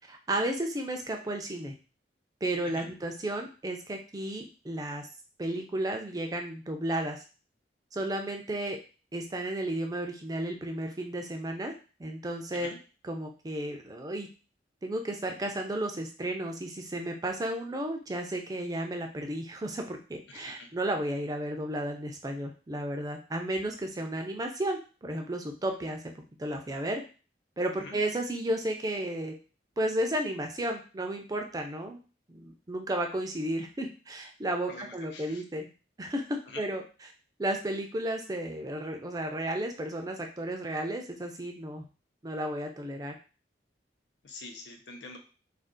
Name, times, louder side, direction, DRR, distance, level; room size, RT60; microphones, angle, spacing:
voice 1, 0.1-1.7 2.4-5.1 5.4-7.2 7.9-8.8 9.1-11.7 12.0-12.7 13.0-14.3 14.8-26.1 26.4-27.0 27.6-29.3 29.8-32.0 32.3-35.7 36.0-36.8 37.4-41.9 42.2-43.1, right 1 dB, 20° right, 4 dB, 0.4 m, -33 dB
voice 2, 20.3-20.7 27.8-28.0 34.7-35.4 36.5-36.6 44.2-45.2, left 3 dB, 90° left, 3 dB, 0.6 m, -45 dB
2.5 x 2.4 x 3.6 m, 0.34 s
head